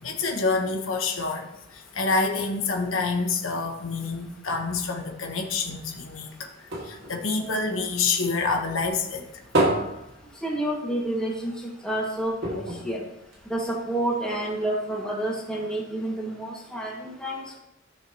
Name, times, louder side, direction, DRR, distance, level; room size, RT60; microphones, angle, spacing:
voice 1, 0.0-6.5 6.8-9.2, left 4 dB, 75° left, 3 dB, 1.3 m, -27 dB
sound 1, 5.8-8.4 8.8-11.1 11.4-11.5 11.8-11.9 12.4-13.9 14.5-14.6, right 1 dB, 55° right, 2.1 m, -30 dB
voice 2, 10.4-13.0 13.5-17.6, right 1 dB, 5° left, -4 dB, 2.1 m, -29 dB
15.0 x 6.6 x 3.1 m, 0.85 s
head